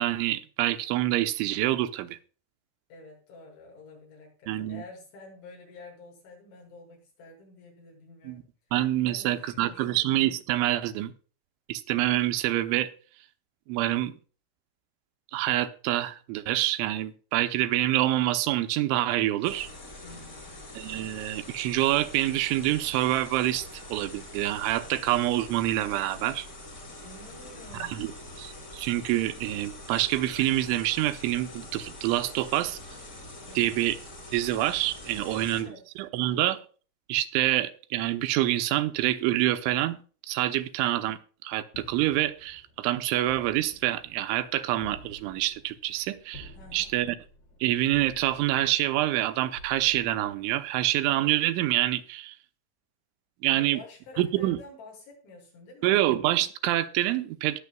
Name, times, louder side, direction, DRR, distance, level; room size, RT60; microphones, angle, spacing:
voice 1, 0.0-2.2 4.5-4.8 8.2-8.4 8.7-11.1 11.7-12.9 13.7-14.1 15.3-19.7 20.8-23.7 23.9-26.5 27.8-28.1 28.4-32.8 33.6-34.0 34.3-35.7 36.0-36.6 37.1-40.0 40.3-47.2 47.6-52.3 53.4-53.8 54.2-54.6 55.8-57.6, right 15 dB, 85° right, 10 dB, 3.2 m, -26 dB
voice 2, 2.9-8.5 9.0-10.0 20.0-20.6 27.0-28.1 33.4-33.8 35.2-35.9 36.1-36.5 46.5-46.9 53.5-56.0, left 2 dB, 80° left, -2 dB, 8.3 m, -49 dB
sound 1, 19.4-35.6, left 1 dB, 25° left, 1.9 m, -44 dB
sound 2, 41.7-51.0, left 1 dB, 60° left, 4.3 m, -51 dB
20.0 x 7.3 x 2.3 m, 0.39 s
omnidirectional pair, 5.3 m